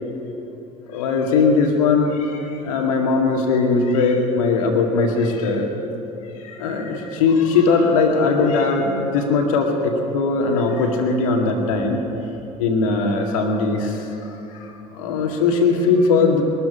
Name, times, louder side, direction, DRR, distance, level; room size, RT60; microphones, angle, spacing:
voice 1, 0.9-5.7 6.4-12.0 12.6-14.1 14.5-16.4, left 4 dB, 70° left, 2 dB, 2.0 m, -19 dB
21.5 x 13.0 x 5.1 m, 2.9 s
figure-of-eight pair, 65°, 18 cm